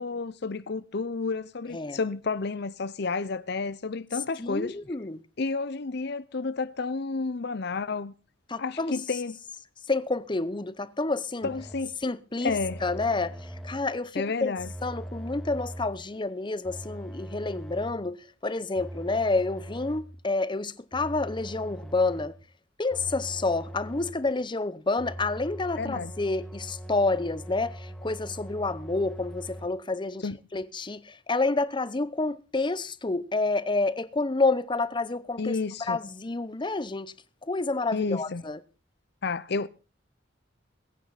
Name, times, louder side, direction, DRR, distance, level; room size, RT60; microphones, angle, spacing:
voice 1, 0.0-4.8 5.4-8.1 8.6-9.4 11.4-12.0 12.4-12.8 14.1-14.7 25.8-26.1 30.2-30.4 35.4-36.0 37.9-38.4 39.2-39.7, left 4 dB, 60° left, 0.7 m, -31 dB
voice 2, 4.4-5.2 8.5-9.0 9.9-11.5 12.0-14.5 14.8-22.4 22.8-35.6 35.9-37.1 37.4-38.6, left 3 dB, 25° left, 0.8 m, -29 dB
sound 1, 11.4-11.9 12.5-14.0 14.6-16.0 16.6-18.1 18.7-20.2 20.9-22.4 22.9-24.3 25.0-29.7, right 1 dB, 5° left, 1.8 m, -41 dB
22.0 x 9.1 x 4.1 m
head